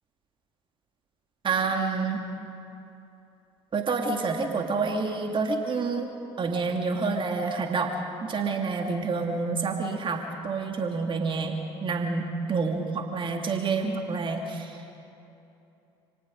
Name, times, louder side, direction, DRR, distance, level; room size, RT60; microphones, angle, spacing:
voice 1, 1.4-2.2 3.7-6.1 6.4-7.9 8.2-14.8, right 4 dB, 35° right, 3 dB, 2.3 m, -28 dB
28.5 x 18.5 x 5.2 m, 2.8 s
hypercardioid pair, 65°, 14 cm